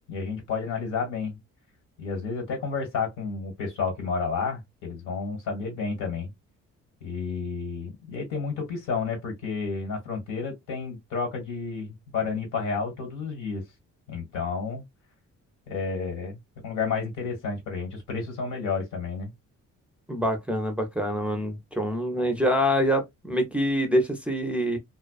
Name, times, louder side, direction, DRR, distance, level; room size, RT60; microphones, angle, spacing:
voice 1, 0.1-1.4 2.0-6.3 7.0-13.6 14.1-14.8 15.7-16.4 16.6-19.3, left 5 dB, 80° left, 1.6 m, -31 dB
voice 2, 20.1-24.8, equal, 5° right, 0.5 m, -25 dB
2.4 x 2.3 x 2.3 m
cardioid pair, 90°, 30 cm